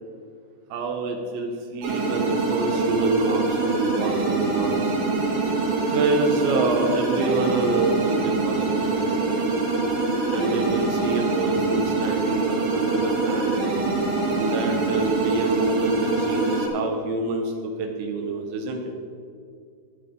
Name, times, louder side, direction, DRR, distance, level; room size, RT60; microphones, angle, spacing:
voice 1, 0.7-4.9 5.9-9.4 10.3-13.7 14.3-18.9, right 3 dB, 90° right, 2 dB, 3.4 m, -27 dB
sound 1, 1.8-16.7, right 3 dB, 60° right, 3.8 m, -24 dB
19.5 x 8.2 x 3.8 m, 2.4 s
omnidirectional pair, 5.0 m